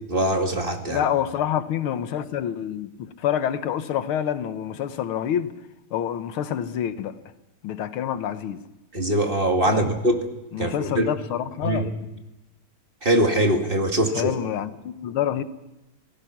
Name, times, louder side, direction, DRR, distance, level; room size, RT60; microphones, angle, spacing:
voice 1, 0.1-1.1 8.9-10.2 10.6-11.1 11.6-11.9 13.0-14.3, right 1 dB, 25° right, 2.2 m, -22 dB
voice 2, 0.9-5.5 5.9-7.1 7.6-8.6 9.7-9.9 10.5-12.0 14.1-15.4, left 10 dB, 85° left, 1.8 m, -27 dB
27.5 x 19.0 x 5.9 m
omnidirectional pair, 2.3 m